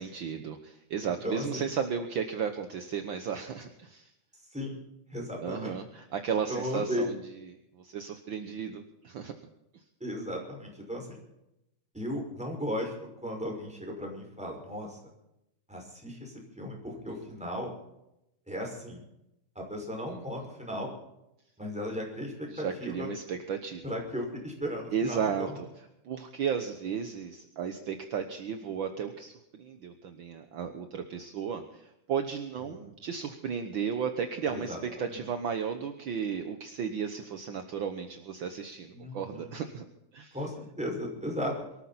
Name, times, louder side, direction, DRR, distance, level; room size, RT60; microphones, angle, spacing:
voice 1, 0.0-4.1 5.4-9.3 9.7-9.8 17.1-17.2 20.1-20.2 22.5-23.8 24.9-25.7 26.0-39.8 40.1-40.4, right 7 dB, 60° right, 6 dB, 1.3 m, -34 dB
voice 2, 1.0-1.6 4.5-4.8 5.1-5.8 6.5-7.1 10.0-11.2 11.9-12.9 13.2-15.1 15.7-17.7 18.5-19.0 19.6-20.9 21.6-23.1 23.8-25.6 34.5-34.8 35.1-35.2 38.9-39.5 40.3-41.5, equal, ahead, 0 dB, 5.3 m, -36 dB
23.5 x 14.0 x 4.2 m, 0.85 s
omnidirectional pair, 3.5 m